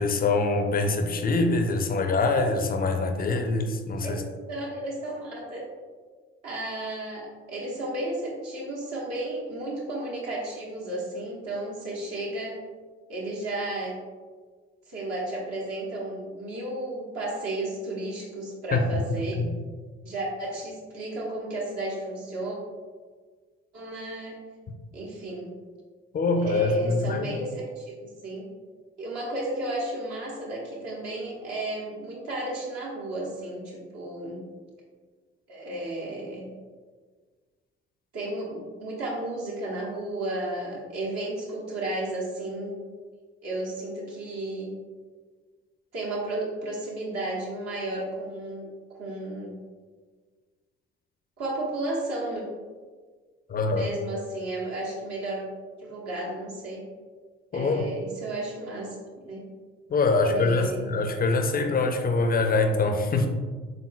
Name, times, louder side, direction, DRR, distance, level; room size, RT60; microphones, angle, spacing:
voice 1, 0.0-4.2 18.7-18.8 19.1-19.5 26.1-27.4 53.5-53.9 57.5-57.9 59.9-63.3, left 3 dB, 30° left, 6 dB, 0.5 m, -24 dB
voice 2, 4.0-5.7 6.4-12.6 13.1-14.0 14.9-19.4 20.0-22.6 23.7-24.4 24.9-25.5 26.4-28.5 29.0-34.4 35.5-36.5 38.1-42.8 43.4-44.7 45.9-48.7 49.0-49.6 51.4-52.4 53.8-55.5 55.8-56.8 57.5-59.0 59.2-59.5 60.1-60.8, right 1 dB, 55° right, -4 dB, 1.0 m, -33 dB
4.0 x 3.7 x 2.2 m, 1.5 s
figure-of-eight pair, 40°, 31 cm